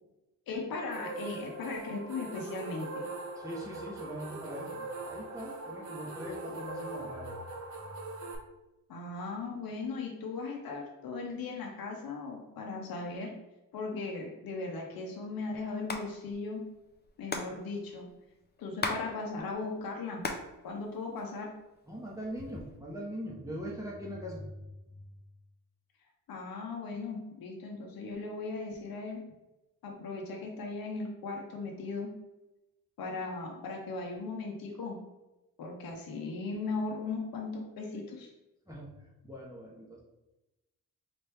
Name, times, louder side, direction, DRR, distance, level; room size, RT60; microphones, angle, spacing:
voice 1, 0.5-3.0 8.9-13.4 13.7-16.7 17.2-18.1 18.6-20.2 20.6-21.5 26.3-29.3 29.8-32.1 33.0-35.0 35.6-38.3, left 3 dB, 75° left, 0 dB, 0.8 m, -38 dB
sound 1, 0.9-8.4, right 3 dB, 55° right, 0.7 m, -41 dB
voice 2, 3.4-7.4 21.9-24.5 38.7-38.9 39.2-40.0, equal, 10° right, -5 dB, 0.8 m, -41 dB
Hands, 15.7-16.1 16.3-16.4 16.6-19.0 19.3-20.5 20.9-21.6 22.2-22.8, left 3 dB, 30° left, 0.6 m, -36 dB
4.1 x 3.0 x 3.4 m, 0.99 s
cardioid pair, 90°, 36 cm